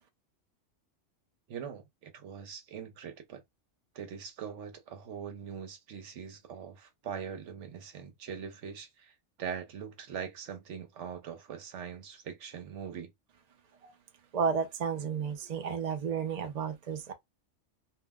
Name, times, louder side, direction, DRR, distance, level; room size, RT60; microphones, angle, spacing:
voice 1, 1.5-3.4 3.9-13.1, right 7 dB, 75° right, 1.0 m, -42 dB
voice 2, 14.3-17.1, right 6 dB, 45° right, 0.6 m, -32 dB
2.5 x 2.1 x 3.5 m
omnidirectional pair, 1.2 m